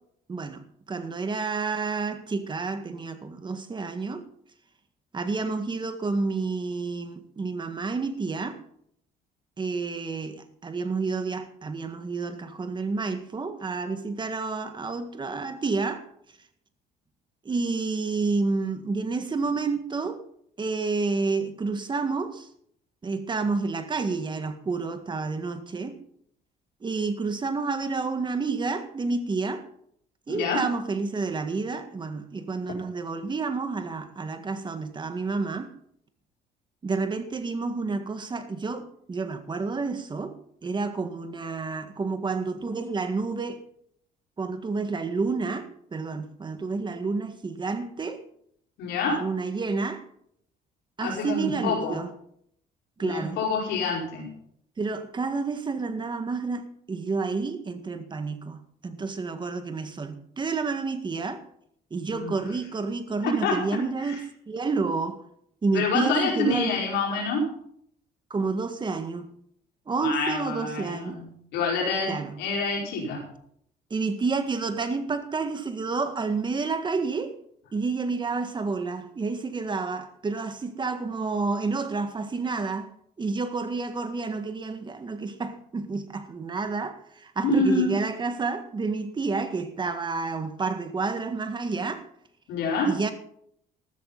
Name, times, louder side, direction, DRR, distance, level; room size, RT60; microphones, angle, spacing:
voice 1, 0.3-4.2 5.1-8.6 9.6-16.0 17.4-20.2 20.6-22.5 23.0-26.0 26.8-29.6 30.3-35.7 36.8-40.3 40.6-43.6 44.4-48.2 49.1-50.0 51.0-52.1 53.0-53.4 54.8-61.4 61.9-64.2 64.5-65.2 65.6-66.8 68.3-69.3 69.9-71.2 72.1-72.4 73.9-77.4 77.7-82.9 83.2-92.0 92.8-93.1, right 4 dB, 25° right, 1.8 m, -29 dB
voice 2, 30.3-30.6 48.8-49.2 51.0-52.0 53.0-54.3 62.1-62.3 63.2-63.6 65.7-67.5 70.0-72.1 72.4-73.2 87.4-87.9 92.5-92.9, left 3 dB, 85° left, 5.1 m, -26 dB
13.5 x 13.5 x 4.1 m
cardioid pair, 110°, 17 cm